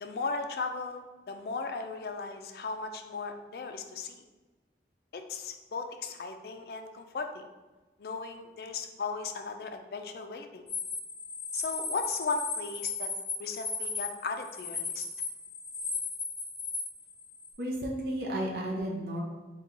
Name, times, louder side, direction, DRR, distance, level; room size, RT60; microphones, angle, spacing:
voice 1, 0.0-4.2 5.1-7.5 8.0-10.7 11.5-13.1 13.4-15.1, left 4 dB, 60° left, 6 dB, 0.4 m, -36 dB
sound 1, 10.7-17.5, left 4 dB, 20° left, 1.2 m, -36 dB
voice 2, 17.6-19.2, right 1 dB, 55° right, -3 dB, 0.5 m, -33 dB
4.4 x 2.3 x 3.8 m, 1.2 s
head